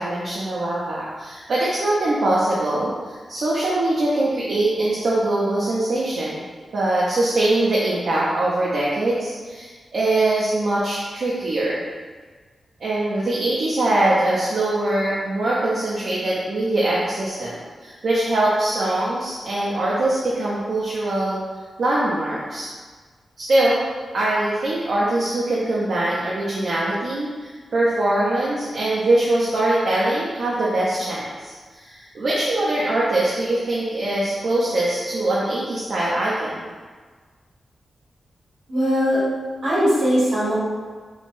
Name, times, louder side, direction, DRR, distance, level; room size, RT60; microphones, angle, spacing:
voice 1, 0.0-6.4 6.7-11.8 12.8-21.4 21.8-22.7 23.4-23.8 24.1-36.7, right 1 dB, 65° right, -7 dB, 0.5 m, -22 dB
voice 2, 38.7-39.2 39.6-40.5, equal, 85° right, -11 dB, 1.2 m, -19 dB
3.1 x 2.1 x 2.5 m, 1.5 s
cardioid pair, 75°, 0 cm